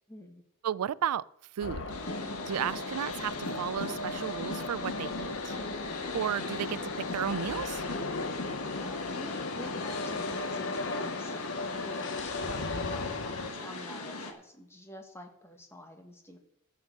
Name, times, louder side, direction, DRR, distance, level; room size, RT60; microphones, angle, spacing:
voice 1, 0.1-0.4 8.8-16.4, equal, 10° left, 1.4 m, -48 dB
voice 2, 0.6-1.2 1.6-1.8 2.5-5.6 6.1-7.8, right 9 dB, 85° right, 0.4 m, -33 dB
sound 1, 1.6-13.5, left 3 dB, 55° left, 1.0 m, -37 dB
sound 2, 1.9-14.3, left 3 dB, 75° left, 1.6 m, -39 dB
12.5 x 7.3 x 6.5 m
head